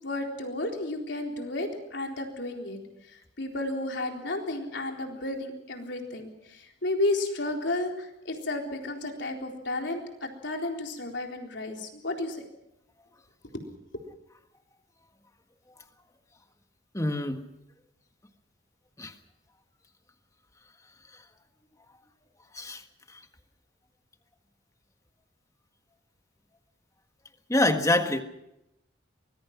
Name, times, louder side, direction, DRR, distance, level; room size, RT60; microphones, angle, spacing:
voice 1, 0.0-2.8 3.1-12.5 13.5-13.7, left 2 dB, 70° left, 2 dB, 4.0 m, -32 dB
voice 2, 16.9-17.4 19.0-19.1 22.5-22.8 23.1-23.2 27.5-28.2, left 1 dB, 15° left, 6 dB, 1.6 m, -25 dB
24.5 x 21.0 x 6.0 m, 0.83 s
head